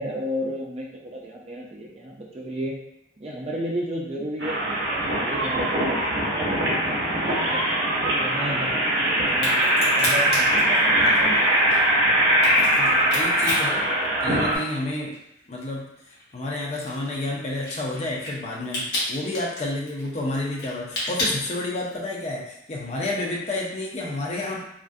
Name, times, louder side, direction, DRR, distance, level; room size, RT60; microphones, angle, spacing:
voice 1, 0.0-2.7 3.2-7.6 8.1-11.6, equal, 30° right, -2 dB, 0.4 m, -33 dB
sound 1, 4.4-14.6, right 1 dB, 70° right, 0.7 m, -21 dB
Crack, 9.3-14.8 15.1-22.1, left 1 dB, 55° left, 0.9 m, -32 dB
voice 2, 12.8-13.9 14.2-15.1 15.5-15.9 16.3-24.6, left 2 dB, 35° left, -2 dB, 0.5 m, -30 dB
2.5 x 2.3 x 2.4 m, 0.79 s
head